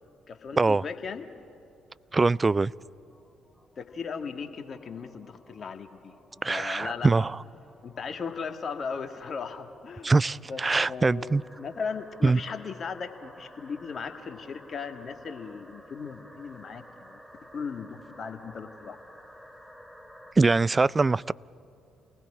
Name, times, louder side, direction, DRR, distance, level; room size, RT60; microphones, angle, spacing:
voice 1, 0.3-1.3 3.8-6.2 6.5-7.3 7.8-10.1 10.5-17.2 17.5-19.0, left 5 dB, 50° left, 1.8 m, -37 dB
voice 2, 2.1-2.7 6.4-7.3 10.0-11.4 12.2-12.4 20.4-21.3, right 3 dB, 25° right, 0.4 m, -23 dB
sound 1, 2.7-20.3, equal, 5° right, 2.2 m, -53 dB
29.5 x 19.5 x 5.0 m
hypercardioid pair, 45°, 0 cm